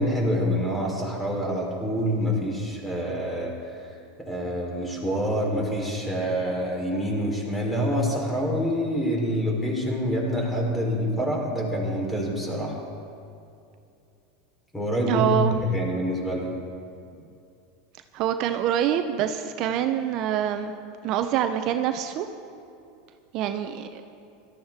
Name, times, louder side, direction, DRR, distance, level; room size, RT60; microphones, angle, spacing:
voice 1, 0.0-3.5 4.2-12.8 14.7-16.5, equal, 10° left, -1 dB, 3.8 m, -26 dB
voice 2, 15.1-15.7 18.1-20.7 21.0-22.3 23.3-24.0, right 9 dB, 55° right, 8 dB, 0.7 m, -25 dB
17.5 x 13.0 x 3.6 m, 2.6 s
hypercardioid pair, 100°, 0 cm